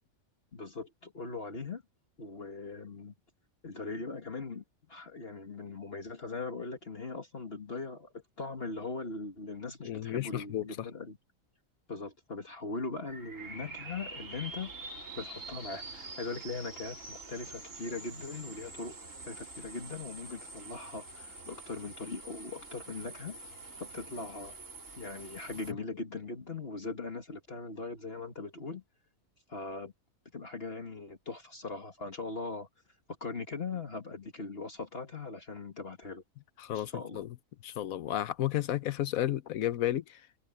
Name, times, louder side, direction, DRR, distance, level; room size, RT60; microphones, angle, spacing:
voice 1, 0.5-1.8 2.2-3.1 3.6-11.2 11.9-18.9 19.3-23.4 23.8-24.6 25.0-28.8 29.5-29.9 30.3-32.7 33.2-36.2 36.7-37.2, left 3 dB, 45° left, 2.0 m, -40 dB
voice 2, 9.8-10.6 36.6-37.3 37.6-40.0, left 12 dB, 85° left, 1.2 m, -32 dB
sound 1, 13.1-25.7, right 2 dB, 65° right, 4.3 m, -46 dB
omnidirectional pair, 1.5 m